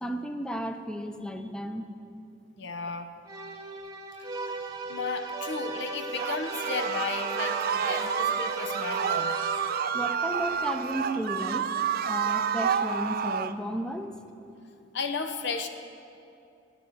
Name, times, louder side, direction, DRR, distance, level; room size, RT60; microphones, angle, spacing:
voice 1, 0.0-1.8 9.9-11.7 12.1-14.1, equal, 5° left, 6 dB, 0.6 m, -33 dB
voice 2, 2.6-3.1 4.9-9.3 14.9-15.7, left 4 dB, 65° left, 6 dB, 0.7 m, -34 dB
sound 1, 3.3-10.1, right 3 dB, 20° right, 1.0 m, -36 dB
sound 2, 6.2-13.6, right 7 dB, 50° right, 0.4 m, -29 dB
13.5 x 7.2 x 7.8 m, 2.6 s
head